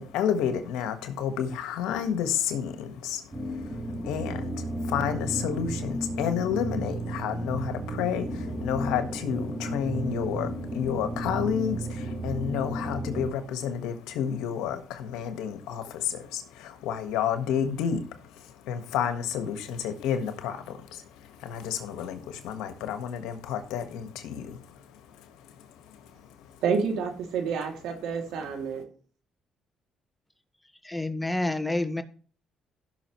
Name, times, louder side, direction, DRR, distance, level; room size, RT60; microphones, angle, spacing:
voice 1, 0.0-26.6, left 8 dB, 85° left, 8 dB, 1.5 m, -31 dB
sound 1, 3.3-13.3, right 1 dB, 25° right, 3.3 m, -33 dB
voice 2, 26.6-28.8, right 6 dB, 80° right, 3 dB, 2.7 m, -29 dB
voice 3, 30.8-32.0, left 2 dB, 10° left, 8 dB, 1.5 m, -28 dB
16.5 x 6.2 x 3.2 m, 0.41 s
cardioid pair, 80°, 0 cm